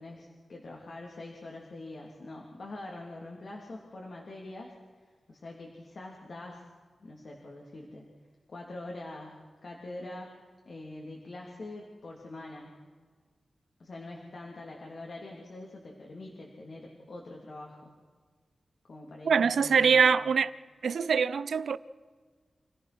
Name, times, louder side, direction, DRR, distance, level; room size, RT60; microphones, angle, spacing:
voice 1, 0.0-4.7 5.3-6.7 7.0-8.1 8.5-10.3 10.6-12.7 13.8-17.9 18.9-20.1, left 2 dB, 60° left, 3.3 m, -44 dB
voice 2, 19.2-20.5 20.8-21.8, right 6 dB, 85° right, 0.7 m, -24 dB
28.5 x 15.5 x 6.2 m
wide cardioid pair, 100°, 0 cm